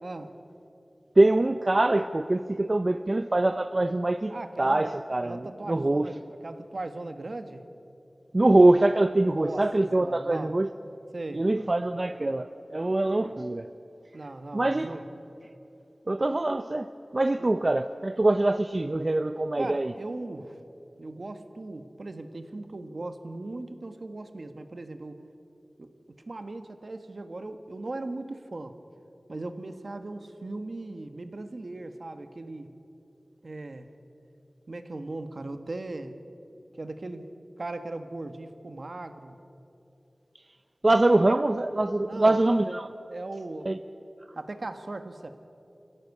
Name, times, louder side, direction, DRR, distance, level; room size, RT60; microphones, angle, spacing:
voice 1, 0.0-0.3 4.3-7.6 9.2-9.6 10.0-10.5 11.1-11.5 14.1-15.0 17.4-17.6 19.6-20.6 21.0-25.2 25.8-25.9 26.3-28.8 29.3-32.7 33.4-33.9 34.7-36.1 36.8-37.3 37.6-39.4 42.0-42.4 43.1-43.7 44.3-45.4, right 2 dB, 65° right, 8 dB, 1.4 m, -38 dB
voice 2, 1.2-6.1 8.3-10.7 11.3-13.7 14.5-15.0 16.1-16.9 17.1-19.9 40.8-42.9 43.7-43.8, right 2 dB, 45° right, 10 dB, 0.6 m, -24 dB
24.0 x 16.0 x 8.3 m, 2.9 s
wide cardioid pair, 65°, 0 cm